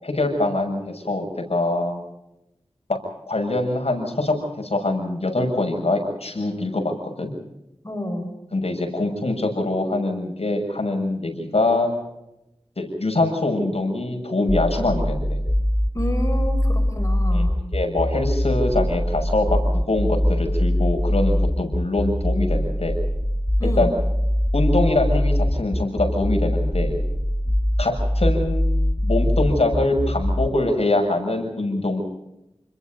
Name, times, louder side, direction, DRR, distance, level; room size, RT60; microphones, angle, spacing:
voice 1, 0.0-2.0 2.9-3.0 3.3-7.3 8.5-11.9 12.8-15.4 17.3-17.4 17.7-23.0 23.6-23.9 24.5-27.0 27.8-28.7 29.0-32.0, left 2 dB, 75° left, 3 dB, 6.9 m, -23 dB
voice 2, 7.8-8.3 15.9-17.6 23.6-23.9, left 1 dB, 30° left, 5 dB, 5.8 m, -29 dB
sound 1, 14.5-30.5, left 1 dB, 10° left, 2.0 m, -22 dB
29.5 x 22.0 x 5.4 m, 0.89 s
wide cardioid pair, 55°, 10 cm